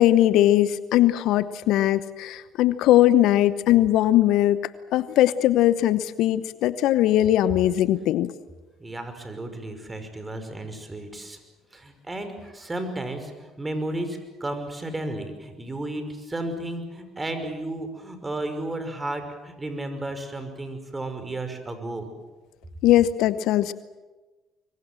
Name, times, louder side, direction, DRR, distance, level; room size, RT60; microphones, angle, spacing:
voice 1, 0.0-4.6 4.9-8.3 22.8-23.7, left 13 dB, 70° left, 15 dB, 0.9 m, -20 dB
voice 2, 8.8-11.4 11.7-22.1, right 1 dB, 20° right, 8 dB, 5.5 m, -33 dB
25.5 x 22.5 x 7.6 m, 1.2 s
hypercardioid pair, 60°, 0 cm